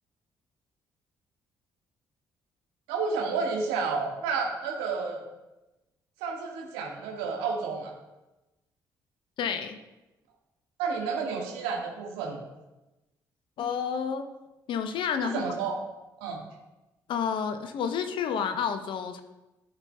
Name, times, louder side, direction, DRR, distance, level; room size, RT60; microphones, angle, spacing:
voice 1, 2.9-5.2 6.2-7.9 10.8-12.4 15.2-15.8 16.2-16.4, right 5 dB, 70° right, 0 dB, 1.5 m, -30 dB
voice 2, 9.4-9.8 13.6-14.2 14.7-15.4 17.1-19.2, left 7 dB, 55° left, 9 dB, 0.8 m, -30 dB
14.0 x 5.5 x 2.2 m, 1.0 s
figure-of-eight pair, 40°, 10 cm